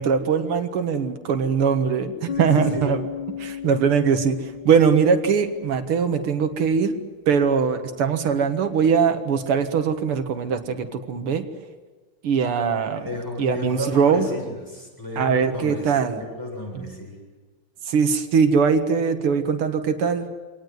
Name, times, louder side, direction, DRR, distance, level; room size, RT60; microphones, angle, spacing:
voice 1, 0.0-3.0 3.4-6.9 7.3-11.4 12.2-13.1 13.4-14.3 15.2-16.2 16.7-16.9 17.9-20.3, right 6 dB, 90° right, 7 dB, 2.4 m, -21 dB
Bass guitar, 2.3-6.1, left 9 dB, 75° left, 0.4 m, -34 dB
voice 2, 2.3-2.9 12.9-17.2, left 1 dB, 10° left, -1 dB, 7.2 m, -33 dB
25.5 x 18.5 x 9.5 m, 1.3 s
omnidirectional pair, 2.4 m